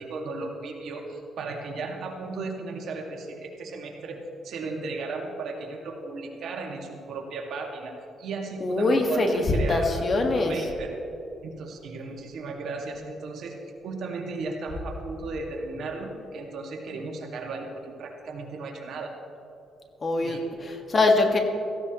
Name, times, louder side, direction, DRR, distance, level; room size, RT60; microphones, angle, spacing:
voice 1, 0.0-4.2 4.4-10.9 11.4-13.5 13.8-19.1 20.2-20.5, right 3 dB, 70° right, 1 dB, 2.1 m, -35 dB
voice 2, 8.6-10.5 20.0-21.4, left 2 dB, 40° left, 3 dB, 1.7 m, -23 dB
17.0 x 15.0 x 3.1 m, 2.8 s
cardioid pair, 90°, 0 cm